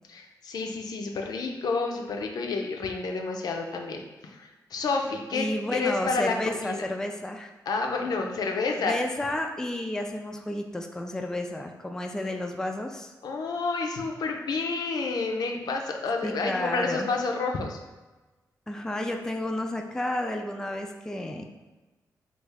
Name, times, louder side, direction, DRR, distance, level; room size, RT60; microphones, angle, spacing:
voice 1, 0.1-6.9 7.7-9.0 13.2-17.8, left 4 dB, 70° left, 2 dB, 0.5 m, -30 dB
voice 2, 5.3-7.5 8.7-13.1 16.2-17.1 18.7-21.5, left 1 dB, 10° left, 3 dB, 0.3 m, -31 dB
3.2 x 2.4 x 3.4 m, 1.2 s
cardioid pair, 65°, 7 cm